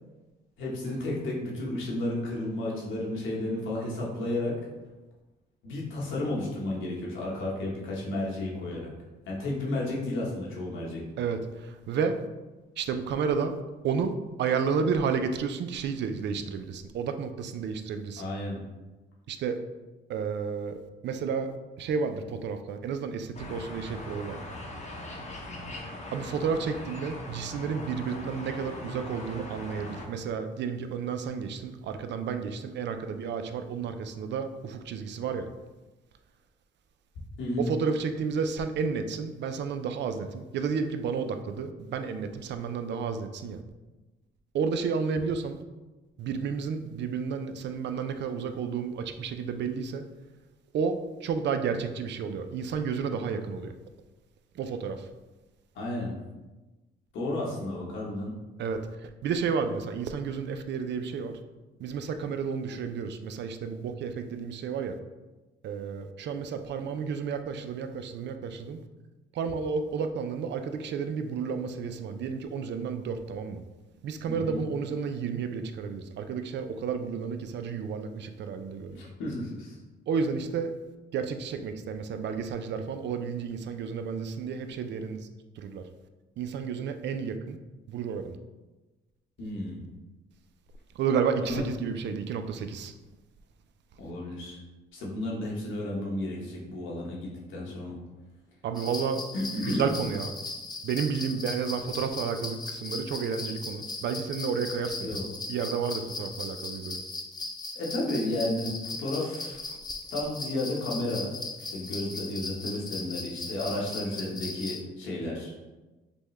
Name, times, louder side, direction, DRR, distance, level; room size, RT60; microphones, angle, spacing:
voice 1, 0.6-4.5 5.6-8.9 9.3-11.0 18.2-18.6 37.4-37.7 55.7-56.1 57.1-58.3 74.3-74.6 78.9-79.8 89.4-89.9 91.5-91.6 94.0-94.6 94.9-97.9 99.3-99.9 105.0-105.3 107.7-109.6 110.1-111.3 111.6-115.5, left 1 dB, 80° left, -4 dB, 1.2 m, -32 dB
voice 2, 11.2-12.2 12.8-13.6 13.8-14.1 14.4-18.3 19.3-19.6 20.1-21.5 21.8-24.4 26.1-35.5 37.6-43.6 44.5-45.6 46.2-50.1 50.7-53.7 54.6-55.1 58.6-58.8 59.2-61.3 61.8-65.0 65.6-68.8 69.3-73.6 74.0-79.0 80.1-80.7 81.1-85.3 85.6-85.8 86.4-87.6 87.9-88.4 91.0-92.9 98.6-99.2 99.7-100.3 100.8-105.2 105.5-107.0 113.6-113.8, right 6 dB, 65° right, 8 dB, 0.4 m, -31 dB
sound 1, 23.3-30.1, left 1 dB, 35° left, 0.8 m, -40 dB
sound 2, 98.8-114.8, left 3 dB, 20° left, 0.5 m, -38 dB
5.2 x 2.2 x 3.2 m, 1.1 s
cardioid pair, 90°, 20 cm